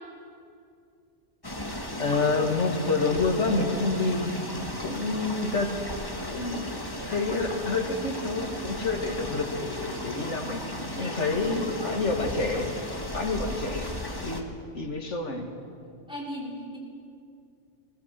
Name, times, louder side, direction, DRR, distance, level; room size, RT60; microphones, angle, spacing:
sound 1, 1.4-14.4, left 1 dB, 20° left, 1.6 m, -35 dB
voice 1, 2.0-4.5 4.8-5.7 6.3-6.8 7.1-10.6 11.0-13.9 14.2-14.5 14.7-15.5, left 3 dB, 65° left, 3 dB, 2.3 m, -28 dB
voice 2, 11.0-11.6 16.1-16.8, left 1 dB, 5° right, -5 dB, 5.0 m, -38 dB
21.5 x 17.0 x 7.6 m, 2.4 s
omnidirectional pair, 1.3 m